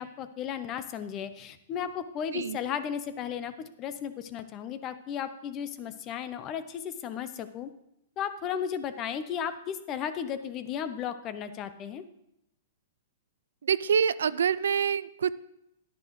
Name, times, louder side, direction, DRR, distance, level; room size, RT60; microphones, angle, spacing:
voice 1, 0.0-7.7 8.2-12.0, left 8 dB, 30° left, 12 dB, 0.7 m, -35 dB
voice 2, 13.6-15.3, right 7 dB, 80° right, 18 dB, 0.3 m, -26 dB
10.0 x 10.0 x 3.1 m, 0.82 s
hypercardioid pair, 140°, 0 cm